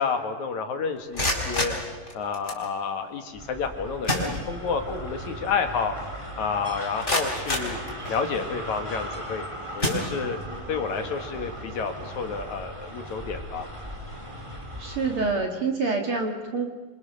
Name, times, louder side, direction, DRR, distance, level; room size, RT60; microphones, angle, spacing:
voice 1, 0.0-1.7 2.1-5.9 6.4-7.8 8.1-9.4 9.7-10.4 10.7-13.7, left 5 dB, 65° left, 6 dB, 2.9 m, -30 dB
sound 1, 1.0-2.7 3.6-3.7 4.0-4.9 5.3-5.4 6.0-6.1 6.6-8.5 9.1-9.3 9.8-10.6, left 1 dB, 15° left, 4.9 m, -29 dB
sound 2, 3.3-15.4, equal, 10° right, 2.1 m, -38 dB
voice 2, 14.8-16.7, right 4 dB, 45° right, 3 dB, 2.3 m, -27 dB
27.5 x 26.0 x 6.6 m, 1.2 s
omnidirectional pair, 3.9 m